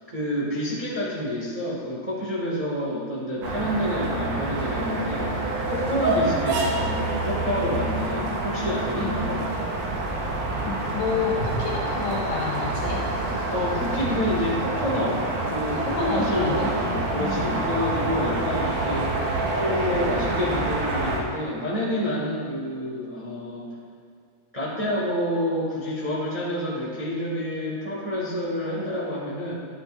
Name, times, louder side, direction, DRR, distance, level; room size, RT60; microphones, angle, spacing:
voice 1, 0.1-9.4 13.5-15.2 15.5-19.2 19.5-23.7 24.5-29.5, left 1 dB, 15° right, -7 dB, 1.7 m, -28 dB
sound 1, 3.4-21.2, right 2 dB, 80° right, 2.7 m, -27 dB
voice 2, 10.6-13.0 15.7-17.5, left 5 dB, 70° left, -3 dB, 2.2 m, -30 dB
11.5 x 10.0 x 2.7 m, 2.3 s
omnidirectional pair, 3.4 m